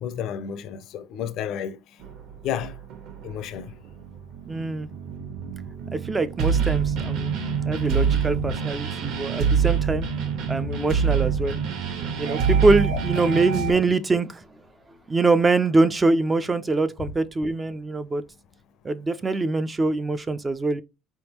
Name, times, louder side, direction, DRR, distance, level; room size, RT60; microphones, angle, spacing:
voice 1, 0.0-1.8 2.4-2.8 3.2-3.7, left 9 dB, 50° left, 0.5 m, -31 dB
sound 1, 2.0-13.7, right 6 dB, 55° right, 1.1 m, -26 dB
voice 2, 4.5-4.9 5.9-7.4 7.7-10.1 10.5-11.6 12.2-14.5 15.1-18.2 18.8-20.8, right 3 dB, 15° right, 0.3 m, -23 dB
4.5 x 3.5 x 2.9 m
cardioid pair, 170°, 0 cm